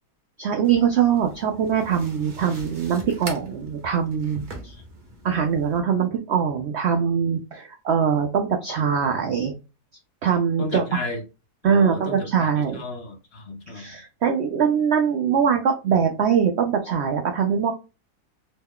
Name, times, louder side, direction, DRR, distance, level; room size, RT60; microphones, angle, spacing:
voice 1, 0.4-4.7 5.2-9.5 10.2-10.8 11.6-12.8 13.7-17.7, right 7 dB, 85° right, 0.6 m, -22 dB
sound 1, 0.6-5.8, right 2 dB, 40° right, 0.8 m, -42 dB
voice 2, 10.6-11.2 11.6-13.9, left 2 dB, 50° left, 0.9 m, -33 dB
3.0 x 2.2 x 3.5 m
omnidirectional pair, 1.7 m